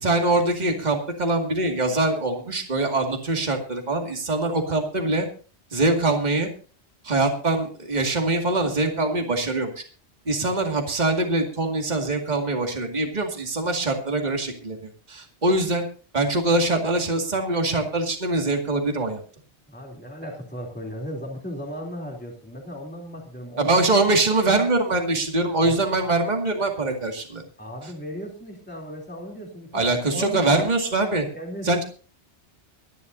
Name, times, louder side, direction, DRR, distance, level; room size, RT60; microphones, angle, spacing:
voice 1, 0.0-5.3 5.7-6.5 7.0-9.8 10.3-14.8 15.1-15.8 16.1-19.2 23.6-27.4 29.7-31.3 31.6-31.8, right 2 dB, 40° right, 2 dB, 2.3 m, -23 dB
voice 2, 19.7-23.9 25.7-25.8 27.6-30.5 31.3-31.8, equal, 10° left, -1 dB, 3.1 m, -36 dB
24.5 x 11.5 x 2.7 m, 0.37 s
omnidirectional pair, 1.2 m